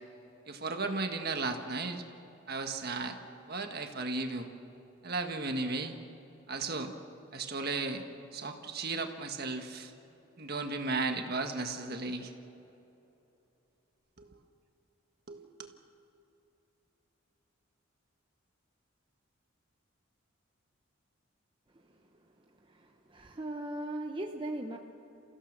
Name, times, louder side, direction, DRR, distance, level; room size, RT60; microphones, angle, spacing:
voice 1, 0.5-2.0 2.5-3.2 3.5-4.5 5.0-5.9 6.5-6.9 7.3-8.0 8.3-9.9 10.4-12.3 14.2-14.3 15.3-15.4, right 3 dB, 50° right, 5 dB, 1.6 m, -35 dB
voice 2, 21.7-24.8, right 1 dB, 25° right, 2 dB, 0.8 m, -40 dB
29.0 x 16.0 x 6.7 m, 3.0 s
head